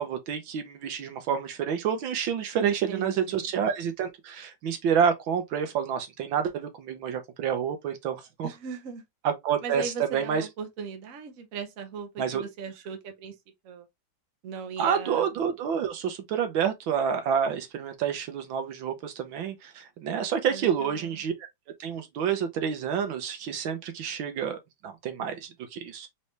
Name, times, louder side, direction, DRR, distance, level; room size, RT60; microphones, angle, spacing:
voice 1, 0.0-8.5 9.2-10.5 12.2-12.4 14.8-21.3 21.8-26.1, right 7 dB, 70° right, 1.6 m, -28 dB
voice 2, 2.6-3.5 8.4-9.0 9.6-13.3 13.6-13.9 14.4-15.3 20.5-21.2, right 6 dB, 50° right, 1.1 m, -38 dB
4.3 x 3.2 x 3.2 m
omnidirectional pair, 2.3 m